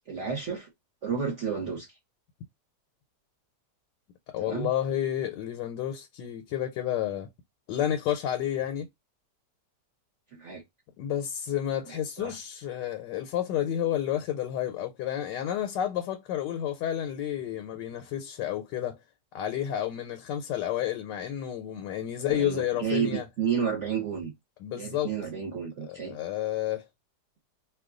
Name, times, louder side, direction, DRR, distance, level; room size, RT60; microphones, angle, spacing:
voice 1, 0.1-0.7 1.0-1.9 4.4-4.7 10.3-10.6 12.2-12.3 22.3-24.3 24.7-26.1, right 7 dB, 50° right, 1.1 m, -31 dB
voice 2, 4.3-7.3 7.7-8.9 11.0-19.0 19.3-23.3 24.6-25.1 25.9-26.8, left 11 dB, 85° left, 1.2 m, -30 dB
2.8 x 2.2 x 3.6 m
omnidirectional pair, 1.9 m